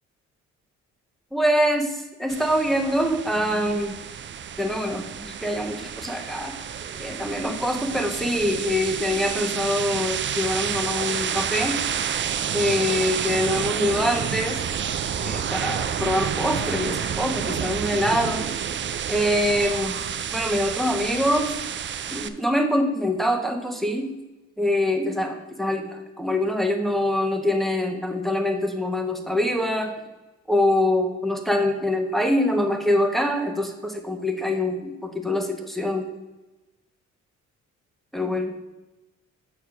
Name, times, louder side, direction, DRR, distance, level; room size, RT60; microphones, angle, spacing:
voice 1, 1.3-4.0 4.6-6.5 7.0-11.8 12.5-14.6 15.2-18.5 19.1-20.0 20.3-21.6 22.1-24.1 24.6-29.9 30.5-36.1 38.1-38.5, left 1 dB, ahead, 3 dB, 1.1 m, -24 dB
sound 1, 2.3-22.3, right 8 dB, 40° right, 0.5 m, -29 dB
6.9 x 4.6 x 5.8 m, 1.1 s
cardioid pair, 90°, 30 cm